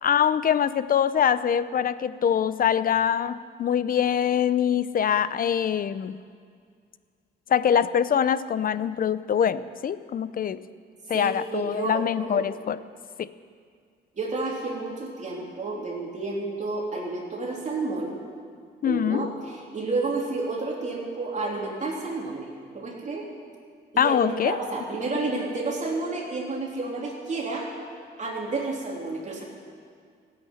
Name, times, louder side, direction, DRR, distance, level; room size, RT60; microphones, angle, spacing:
voice 1, 0.0-6.2 7.5-10.6 11.1-12.8 13.2-13.3 18.8-19.3 24.0-24.5, left 8 dB, 45° left, 16 dB, 0.6 m, -24 dB
voice 2, 11.1-12.4 14.2-18.2 18.8-22.5 22.7-23.3 23.9-27.7 28.2-29.4, right 3 dB, 35° right, -3 dB, 3.4 m, -30 dB
16.5 x 8.7 x 9.7 m, 2.2 s
cardioid pair, 90°, 20 cm